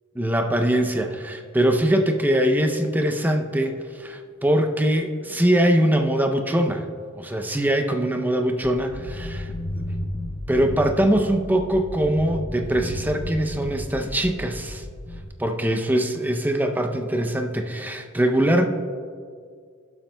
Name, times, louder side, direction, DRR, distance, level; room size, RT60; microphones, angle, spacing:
voice 1, 0.1-6.8 7.2-9.9 10.5-14.8 15.4-18.7, right 1 dB, 10° right, 4 dB, 0.5 m, -22 dB
sound 1, 8.6-15.2, left 1 dB, 85° left, 1.3 m, -33 dB
17.5 x 7.2 x 2.2 m, 2.1 s
head